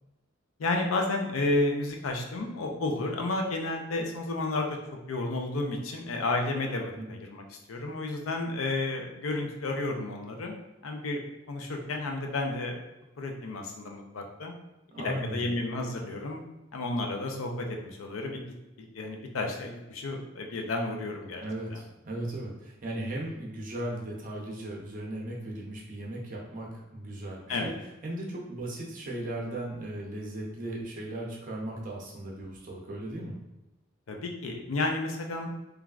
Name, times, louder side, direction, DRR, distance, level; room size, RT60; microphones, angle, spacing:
voice 1, 0.6-4.8 5.1-10.6 10.8-11.2 11.5-12.8 13.2-14.5 15.0-16.4 16.7-18.4 18.8-21.4 21.7-21.8 27.5-27.7 34.1-35.5, left 2 dB, 90° left, 2 dB, 0.5 m, -31 dB
voice 2, 14.9-15.5 21.4-27.7 28.0-33.4, right 1 dB, 40° right, -2 dB, 0.6 m, -37 dB
3.1 x 2.3 x 2.4 m, 1.0 s
head